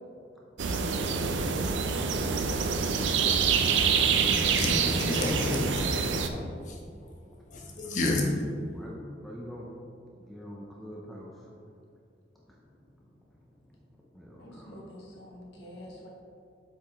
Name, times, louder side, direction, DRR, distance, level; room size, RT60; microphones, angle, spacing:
sound 1, 0.6-6.3, right 5 dB, 90° right, 0.5 m, -26 dB
voice 1, 4.2-5.7 6.3-6.4 6.6-6.7 7.5-8.4, left 2 dB, 40° left, -1 dB, 1.0 m, -30 dB
voice 2, 8.7-9.7 10.2-11.3 12.5-12.6 14.1-14.8 15.1-15.5, equal, ahead, -4 dB, 0.6 m, -45 dB
voice 3, 14.4-16.1, left 1 dB, 70° left, -3 dB, 1.2 m, -47 dB
7.4 x 4.9 x 3.5 m, 2.4 s
head